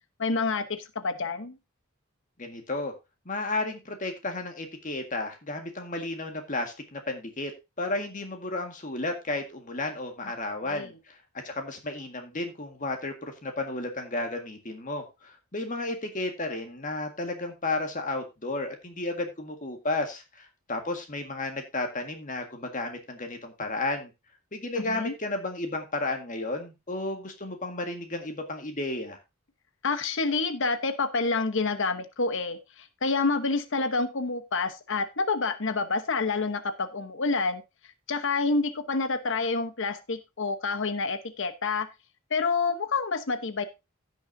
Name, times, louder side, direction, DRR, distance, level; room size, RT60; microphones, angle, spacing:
voice 1, 0.2-1.6 10.6-10.9 24.9-25.1 29.8-37.6 38.1-41.9 42.3-43.6, left 4 dB, 60° left, 10 dB, 1.0 m, -28 dB
voice 2, 2.4-2.9 3.3-7.5 7.8-11.2 11.4-24.1 24.5-29.2, left 2 dB, 35° left, 5 dB, 1.8 m, -33 dB
16.5 x 6.4 x 2.7 m, 0.25 s
head